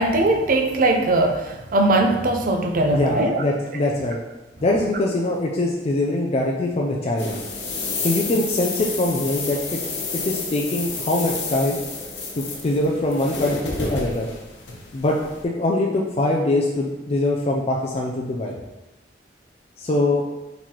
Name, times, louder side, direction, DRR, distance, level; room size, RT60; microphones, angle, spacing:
voice 1, 0.0-3.4, right 2 dB, 50° right, 5 dB, 0.5 m, -20 dB
voice 2, 2.9-4.2 4.6-7.4 7.9-9.8 10.1-11.8 12.4-14.3 14.9-15.2 15.4-18.6 19.8-20.2, left 2 dB, 35° left, -1 dB, 0.4 m, -23 dB
sound 1, 7.2-15.4, left 3 dB, 85° left, 0.9 m, -30 dB
4.5 x 4.0 x 2.9 m, 1.1 s
head